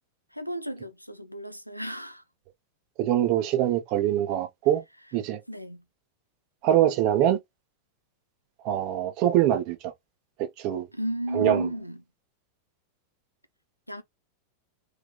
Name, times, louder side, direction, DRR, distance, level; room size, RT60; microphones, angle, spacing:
voice 1, 0.3-2.2 5.5-5.8 10.9-12.0 13.9-14.0, right 1 dB, 90° right, 0.5 m, -33 dB
voice 2, 3.0-4.8 5.1-5.4 6.6-7.4 8.6-9.8 10.4-10.9 11.3-11.7, right 12 dB, 45° right, 0.9 m, -23 dB
3.5 x 3.4 x 2.3 m
figure-of-eight pair, 90°, 0 cm